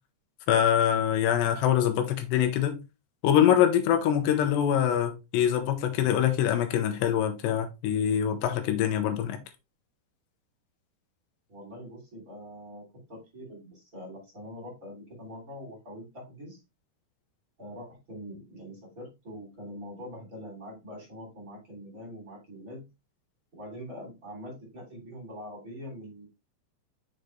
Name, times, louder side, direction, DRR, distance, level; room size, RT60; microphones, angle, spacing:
voice 1, 0.5-2.8 3.2-9.4, left 10 dB, 80° left, 2.7 m, -24 dB
voice 2, 11.5-16.6 17.6-22.8 23.5-26.3, equal, 20° right, 2.7 m, -43 dB
6.7 x 5.1 x 3.1 m
omnidirectional pair, 5.3 m